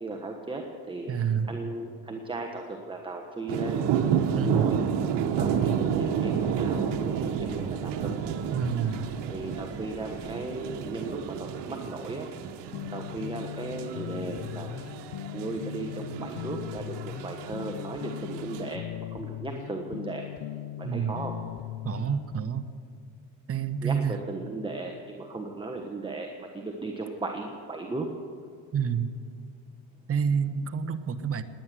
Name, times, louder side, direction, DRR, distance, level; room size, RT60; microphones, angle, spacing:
voice 1, 0.0-1.1 1.4-3.8 4.3-4.8 5.4-8.1 9.3-12.3 12.9-14.7 15.3-18.9 19.1-20.3 20.8-21.3 23.8-28.1, right 2 dB, 10° right, 2 dB, 1.3 m, -36 dB
voice 2, 1.1-1.5 4.3-4.6 8.5-9.1 20.8-21.1 21.8-22.7 23.5-24.2 28.7-29.1 30.1-31.4, right 7 dB, 35° right, 10 dB, 1.0 m, -28 dB
sound 1, 3.5-18.7, right 8 dB, 85° right, 1.2 m, -31 dB
sound 2, 5.3-10.4, left 2 dB, 85° left, 3.8 m, -48 dB
sound 3, 12.7-22.3, left 14 dB, 60° left, 0.5 m, -39 dB
19.5 x 9.8 x 7.6 m, 2.3 s
cardioid pair, 115°, 41 cm